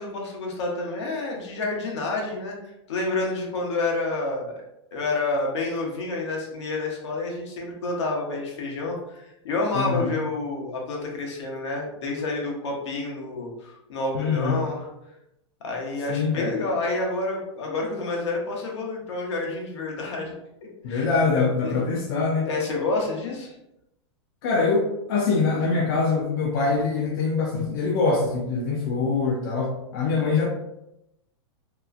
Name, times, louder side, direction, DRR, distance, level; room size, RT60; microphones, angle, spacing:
voice 1, 0.0-2.6 2.9-4.6 4.9-14.9 15.6-20.3 20.9-21.0 21.6-21.8 22.4-23.5, left 3 dB, 75° left, -1 dB, 0.9 m, -29 dB
voice 2, 9.7-10.1 14.1-14.6 16.1-16.5 20.8-22.5 24.4-30.5, left 4 dB, 50° left, -3 dB, 0.5 m, -24 dB
2.9 x 2.3 x 2.3 m, 0.85 s
supercardioid pair, 155°, 15 cm